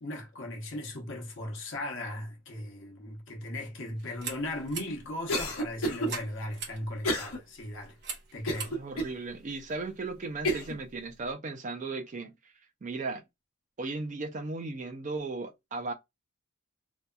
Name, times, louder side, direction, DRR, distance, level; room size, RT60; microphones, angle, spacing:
voice 1, 0.0-8.0 8.3-8.7, left 1 dB, 55° left, 0.8 m, -37 dB
sound 1, 4.0-10.2, right 6 dB, 50° right, 0.9 m, -45 dB
Cough, 5.3-6.1 7.0-7.4 7.8-7.9 8.5-9.1 9.7-9.8 10.4-10.8, equal, 85° left, 0.9 m, -30 dB
voice 2, 8.7-12.3 12.8-13.2 13.8-15.9, right 3 dB, 35° right, 0.4 m, -36 dB
2.7 x 2.2 x 2.2 m
head